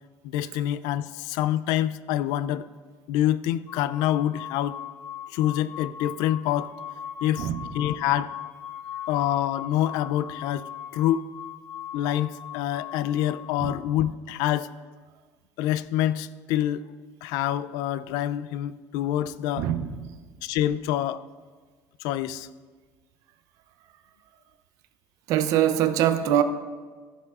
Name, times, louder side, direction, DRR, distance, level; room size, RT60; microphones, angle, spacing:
voice 1, 0.2-2.7 3.1-4.8 5.3-6.7 7.2-8.3 9.1-11.3 11.9-14.7 15.6-16.8 17.2-19.7 20.4-21.2 22.0-22.5, left 12 dB, 70° left, 16 dB, 0.3 m, -26 dB
sound 1, 3.7-13.8, left 10 dB, 40° left, 3.5 m, -39 dB
voice 2, 19.6-19.9 25.3-26.4, right 11 dB, 55° right, 10 dB, 0.6 m, -23 dB
15.0 x 10.0 x 2.4 m, 1.5 s
cardioid pair, 170°, 7 cm